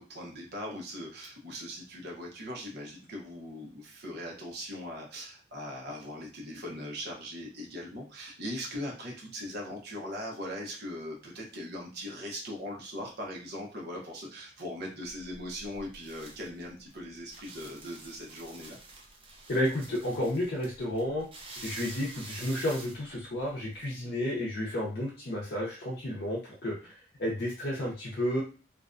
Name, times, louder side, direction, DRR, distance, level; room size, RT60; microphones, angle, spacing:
voice 1, 0.0-18.8, equal, 60° right, 0 dB, 0.8 m, -40 dB
sound 1, 15.1-23.9, right 2 dB, 30° right, 0.5 m, -48 dB
voice 2, 19.5-21.3 21.6-28.4, left 1 dB, 60° left, -4 dB, 0.6 m, -32 dB
2.5 x 2.2 x 2.5 m, 0.35 s
head